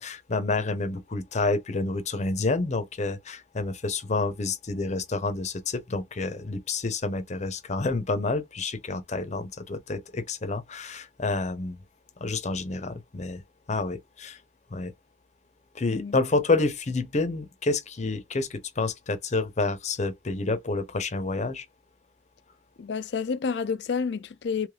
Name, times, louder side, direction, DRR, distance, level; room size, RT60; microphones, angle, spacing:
voice 1, 0.0-11.8 12.2-13.4 13.7-14.4 14.7-14.9 15.7-21.6, left 3 dB, 40° left, 0.7 m, -29 dB
voice 2, 22.8-24.7, left 5 dB, 75° left, 0.4 m, -29 dB
3.3 x 3.1 x 2.2 m
head